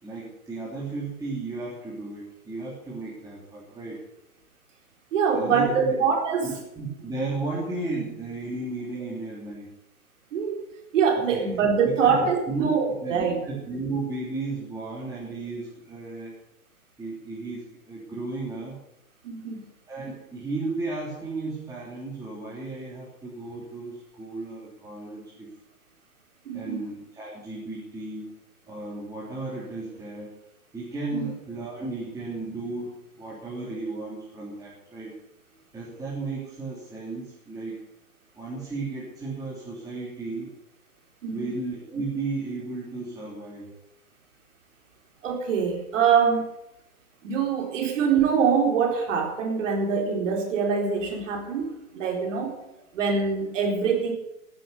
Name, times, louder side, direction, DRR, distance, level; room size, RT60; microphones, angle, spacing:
voice 1, 0.0-4.0 5.3-6.0 6.4-9.7 11.3-11.5 11.8-12.7 13.0-16.4 17.0-18.8 19.9-25.5 26.5-28.3 28.7-30.3 30.7-35.1 35.7-37.8 38.4-40.5 41.3-43.7, right 3 dB, 10° right, -7 dB, 3.3 m, -34 dB
voice 2, 5.1-6.5 10.3-10.6 10.9-13.4 19.2-19.7 26.5-26.8 31.1-31.3 41.2-41.5 45.2-46.5 47.2-52.5 52.9-54.1, right 6 dB, 55° right, 2 dB, 4.3 m, -24 dB
15.0 x 7.7 x 8.2 m, 0.85 s
hypercardioid pair, 135°, 44 cm